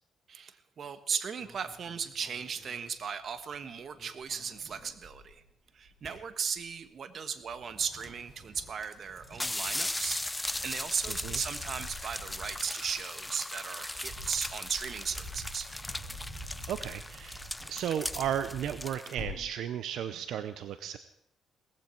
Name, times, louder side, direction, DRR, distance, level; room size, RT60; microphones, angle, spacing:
voice 1, 0.3-5.4 5.7-10.2 10.6-15.7, right 6 dB, 55° right, 12 dB, 1.3 m, -36 dB
sound 1, 1.4-3.6 3.8-5.4 5.8-6.8 7.4-19.6, equal, 30° right, 7.9 m, -48 dB
sound 2, 8.0-8.1 8.8-8.9 9.2-19.1, left 1 dB, 10° left, 0.5 m, -38 dB
voice 2, 16.7-17.4 17.7-21.0, right 10 dB, 75° right, 12 dB, 0.7 m, -34 dB
18.0 x 15.0 x 4.5 m, 0.72 s
cardioid pair, 90°, 0 cm